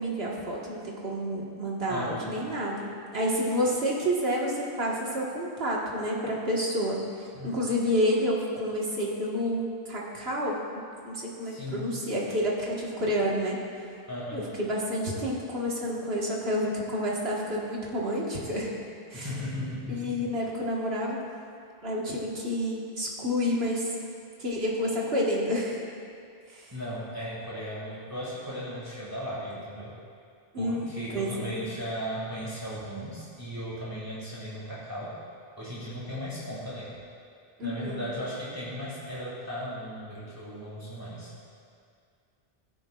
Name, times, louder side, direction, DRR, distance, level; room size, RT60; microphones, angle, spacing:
voice 1, 0.0-7.0 7.4-13.6 14.3-18.7 19.1-19.3 19.9-21.2 21.8-23.9 24.4-25.8 26.5-26.7 30.5-31.5 37.6-38.0, equal, 75° right, -4 dB, 1.9 m, -29 dB
voice 2, 1.9-2.4 7.3-7.7 11.4-11.9 14.1-14.5 19.1-20.1 26.7-30.0 30.6-35.1 35.6-37.0 37.6-41.3, equal, 20° right, -8 dB, 2.1 m, -36 dB
15.5 x 9.7 x 2.4 m, 2.3 s
omnidirectional pair, 1.1 m